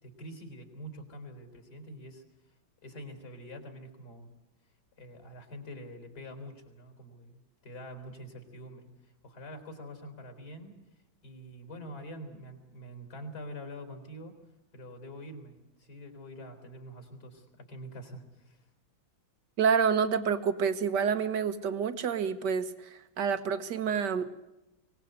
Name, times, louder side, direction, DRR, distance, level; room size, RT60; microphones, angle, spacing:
voice 1, 0.0-2.5 2.8-4.3 4.9-10.8 11.2-14.4 14.7-18.6, equal, 50° left, 7 dB, 4.6 m, -46 dB
voice 2, 19.6-24.3, right 6 dB, 60° right, 11 dB, 1.9 m, -28 dB
24.0 x 19.5 x 8.1 m, 0.95 s
omnidirectional pair, 2.2 m